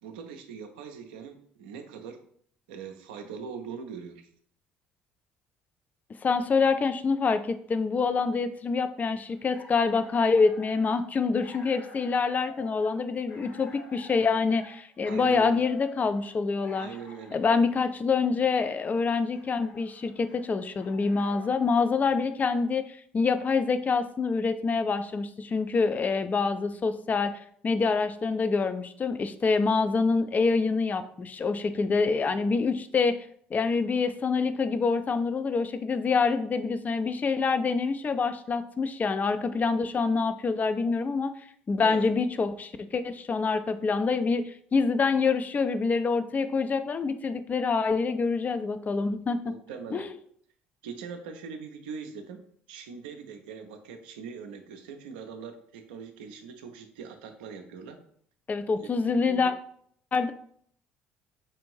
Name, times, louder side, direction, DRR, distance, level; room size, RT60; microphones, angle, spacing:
voice 1, 0.0-2.2 2.7-4.3 15.0-15.6 16.7-17.4 41.8-42.1 49.4-50.1 50.8-52.4 52.7-58.0 58.8-59.6, right 6 dB, 75° right, 6 dB, 0.4 m, -41 dB
voice 2, 6.2-16.9 17.3-27.3 27.6-33.1 33.5-41.3 41.7-49.4 49.9-50.1 58.5-59.5 60.1-60.3, left 4 dB, 30° left, 11 dB, 0.4 m, -26 dB
sound 1, 9.3-21.7, left 2 dB, 60° left, 1.0 m, -50 dB
4.4 x 2.5 x 3.0 m, 0.63 s
figure-of-eight pair, 55°, 5 cm